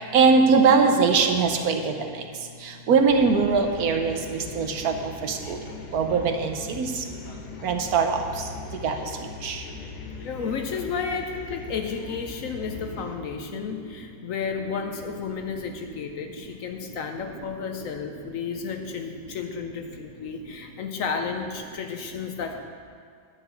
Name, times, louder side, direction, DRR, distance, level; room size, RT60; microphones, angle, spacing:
voice 1, 0.1-1.9 2.9-4.2 4.6-4.9 5.2-5.6 5.9-6.9 7.6-8.2 8.8-8.9 9.4-9.6, right 5 dB, 70° right, 5 dB, 1.2 m, -20 dB
sound 1, 3.1-13.2, left 3 dB, 90° left, 1.6 m, -40 dB
voice 2, 10.2-22.6, left 6 dB, 65° left, 5 dB, 0.9 m, -32 dB
11.0 x 4.7 x 8.1 m, 2.2 s
omnidirectional pair, 1.7 m